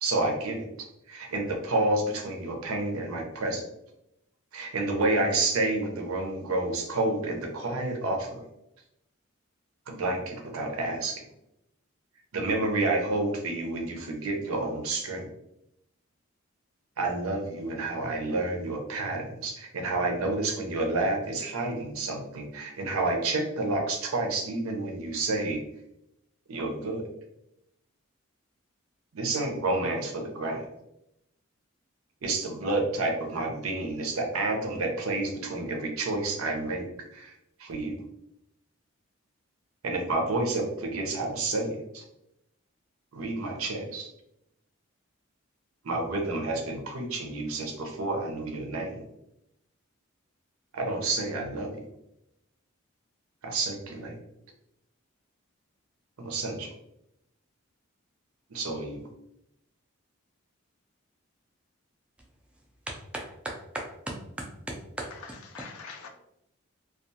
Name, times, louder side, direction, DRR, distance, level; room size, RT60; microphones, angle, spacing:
voice 1, 0.0-3.6 4.5-8.4 9.9-11.2 12.3-15.3 17.0-25.6 26.5-27.0 29.1-30.7 32.2-36.9 37.1-37.3 37.6-38.0 39.8-42.0 43.1-44.1 45.8-49.0 50.7-51.8 53.4-54.2 56.2-56.7 58.5-59.0, right 2 dB, 90° right, 0.6 m, -29 dB
voice 2, 62.9-65.1, right 1 dB, 5° right, 0.3 m, -37 dB
voice 3, 65.1-66.1, left 5 dB, 85° left, 0.5 m, -44 dB
2.3 x 2.3 x 2.7 m
head